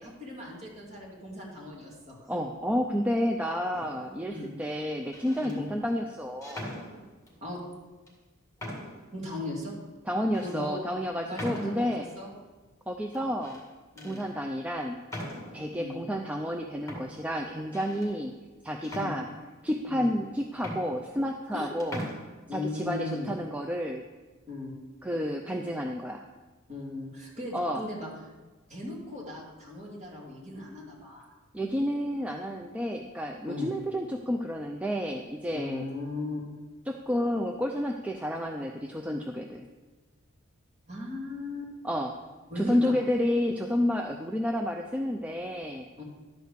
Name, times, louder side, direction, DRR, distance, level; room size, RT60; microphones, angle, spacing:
voice 1, 0.0-2.3 4.3-4.5 5.4-5.7 7.4-7.6 9.1-9.8 10.4-10.8 11.2-12.3 13.9-14.2 15.7-16.0 18.9-19.2 19.9-20.1 21.5-21.7 22.5-23.3 24.5-24.7 26.7-28.1 28.7-31.3 33.5-33.7 35.5-36.4 40.9-41.7 42.5-42.9 46.0-46.1, left 2 dB, 30° right, -3 dB, 2.5 m, -37 dB
voice 2, 2.3-6.7 10.1-12.1 12.9-13.6 14.0-15.0 15.5-18.3 18.6-19.3 19.6-22.0 22.5-24.0 25.0-26.2 27.5-27.8 31.5-35.8 36.9-39.7 41.8-42.1 42.6-45.9, equal, 5° right, 2 dB, 0.4 m, -30 dB
sound 1, 3.7-4.2 5.0-5.6 6.4-7.4 8.1-8.2 8.6-9.1 9.6-9.7 10.3-10.5 11.4-12.0 13.1-13.6 14.0-14.3 15.1-15.7 16.5-16.6 16.9-18.1 18.8-19.7 20.2-20.3 20.6-21.5 21.8-22.2, equal, 15° left, 1.8 m, -41 dB
12.0 x 4.7 x 6.6 m, 1.3 s
head